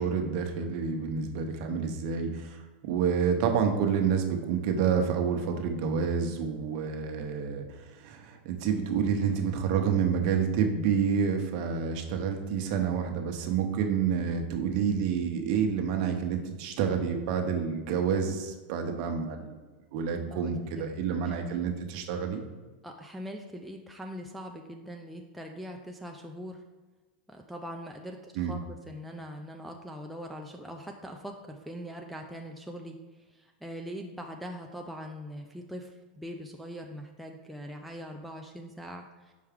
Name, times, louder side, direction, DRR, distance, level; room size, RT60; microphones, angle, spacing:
voice 1, 0.0-7.6 8.0-19.6 19.9-22.4 28.4-28.5, right 6 dB, 45° right, 4 dB, 0.8 m, -28 dB
voice 2, 20.1-21.0 21.5-21.6 22.8-26.6 27.3-33.0 33.3-39.3, equal, ahead, 1 dB, 0.3 m, -42 dB
5.7 x 4.7 x 3.6 m, 1.3 s
supercardioid pair, 150°, 6 cm